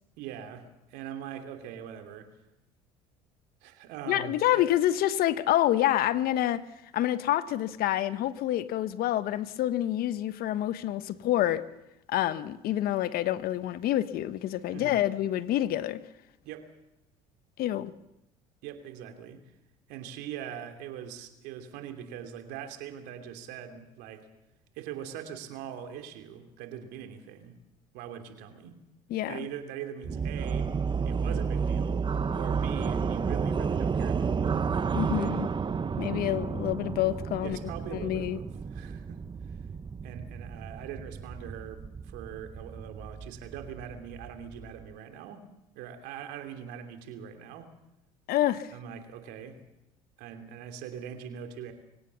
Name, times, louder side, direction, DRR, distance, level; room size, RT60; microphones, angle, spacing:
voice 1, 0.2-2.3 3.6-4.7 14.7-15.0 16.4-16.7 18.6-19.4 19.9-24.3 24.7-27.6 27.9-28.8 29.3-30.7 31.0-32.1 32.4-34.6 37.4-39.2 39.5-39.7 40.0-45.5 45.7-47.7 48.7-49.6 50.2-51.7, right 9 dB, 70° right, 3.1 m, -42 dB
voice 2, 4.1-6.6 6.9-11.6 12.1-16.0 17.6-17.9 29.1-29.5 34.9-35.5 36.0-37.6 37.9-38.4 48.3-48.7, left 13 dB, 60° left, 1.3 m, -27 dB
sound 1, 30.0-44.9, right 6 dB, 25° right, 1.0 m, -31 dB
24.0 x 17.0 x 7.1 m
hypercardioid pair, 70°, 18 cm